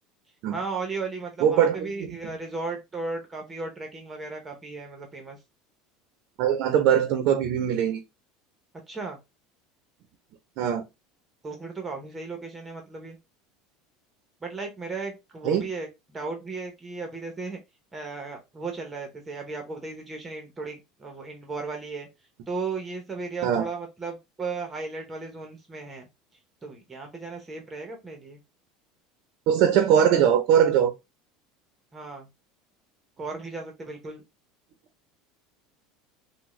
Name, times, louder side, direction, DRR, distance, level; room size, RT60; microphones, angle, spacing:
voice 1, 0.5-5.4 8.9-9.2 11.4-13.2 14.4-17.6 17.9-22.1 22.5-26.1 26.6-28.4 31.9-32.3 33.2-34.2, right 4 dB, 15° right, 0.8 m, -35 dB
voice 2, 1.4-2.2 6.4-8.0 10.6-10.8 15.4-15.6 23.4-23.7 29.5-30.9, right 9 dB, 60° right, 0.6 m, -21 dB
3.5 x 2.1 x 3.1 m
supercardioid pair, 135°, 0 cm